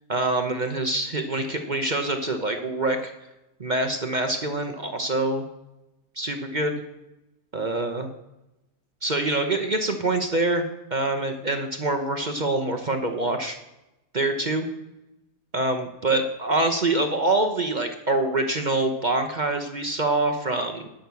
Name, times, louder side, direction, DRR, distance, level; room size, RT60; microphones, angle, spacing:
voice 1, 0.1-3.1 3.6-5.4 6.2-6.8 7.5-8.1 9.0-10.6 10.9-13.6 14.1-14.7 15.5-20.9, right 2 dB, 35° right, 6 dB, 0.8 m, -25 dB
11.5 x 6.1 x 7.0 m, 0.92 s
omnidirectional pair, 1.7 m